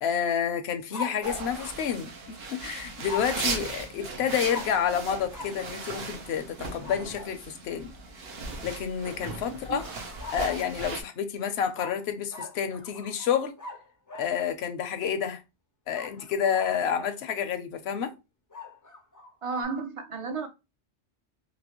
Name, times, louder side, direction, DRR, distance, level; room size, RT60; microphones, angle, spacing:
voice 1, 0.0-7.9 8.6-9.9 10.3-13.5 14.1-15.4 15.9-18.1, left 8 dB, 70° left, 0.8 m, -29 dB
sound 1, 0.9-2.5 3.0-3.6 4.5-4.9 5.3-5.6 6.8-7.4 9.8-11.0 11.7-14.4 15.9-17.2 18.5-19.6, left 4 dB, 30° left, 0.3 m, -41 dB
sound 2, 1.2-11.0, right 3 dB, 65° right, 0.9 m, -37 dB
voice 2, 9.5-9.8 19.4-20.5, right 4 dB, 40° right, 0.5 m, -33 dB
3.1 x 2.7 x 2.9 m
omnidirectional pair, 1.2 m